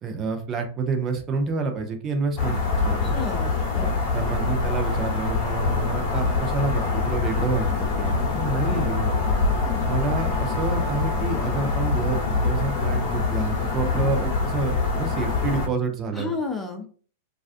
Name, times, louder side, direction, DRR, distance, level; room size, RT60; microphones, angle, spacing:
voice 1, 0.0-3.2 4.1-9.1 9.9-16.3, right 4 dB, 30° right, 5 dB, 0.5 m, -28 dB
sound 1, 2.4-15.7, left 3 dB, 45° left, 0.9 m, -24 dB
voice 2, 3.0-4.0 8.7-8.9 9.7-9.9 13.9-14.1 16.1-16.9, left 4 dB, 15° left, 3 dB, 0.5 m, -32 dB
2.4 x 2.3 x 2.4 m, 0.41 s
hypercardioid pair, 110°, 0 cm